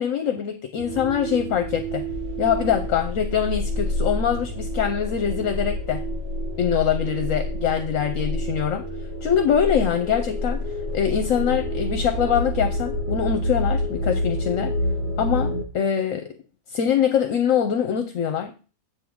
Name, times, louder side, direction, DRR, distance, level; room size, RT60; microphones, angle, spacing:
voice 1, 0.0-2.0 2.4-6.0 6.6-8.8 9.2-10.6 10.9-14.8 15.2-16.4 16.7-18.5, left 8 dB, 70° left, 6 dB, 1.1 m, -23 dB
sound 1, 0.8-15.6, left 1 dB, 45° right, 1.5 m, -28 dB
8.2 x 3.6 x 6.2 m, 0.36 s
omnidirectional pair, 1.5 m